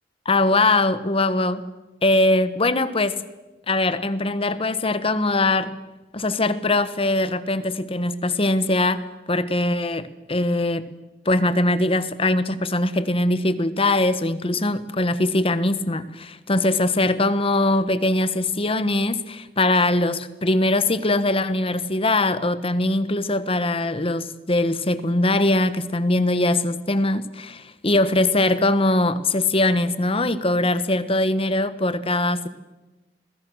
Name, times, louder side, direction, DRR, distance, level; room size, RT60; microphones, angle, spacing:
voice 1, 0.2-1.7 2.0-3.2 3.7-5.7 6.1-10.9 11.2-32.5, left 2 dB, 30° left, 13 dB, 1.2 m, -21 dB
29.0 x 21.0 x 6.3 m, 1.1 s
head